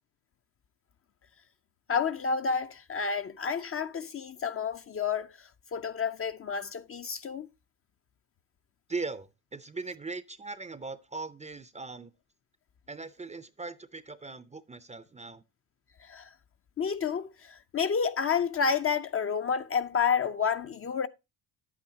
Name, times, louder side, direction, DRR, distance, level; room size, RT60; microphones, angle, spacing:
voice 1, 1.9-7.5 16.0-16.3 16.8-21.1, left 6 dB, 30° left, 0.5 m, -30 dB
voice 2, 8.9-12.1 12.9-15.4, right 3 dB, 15° right, 0.5 m, -39 dB
9.9 x 8.5 x 2.7 m
cardioid pair, 100°, 44 cm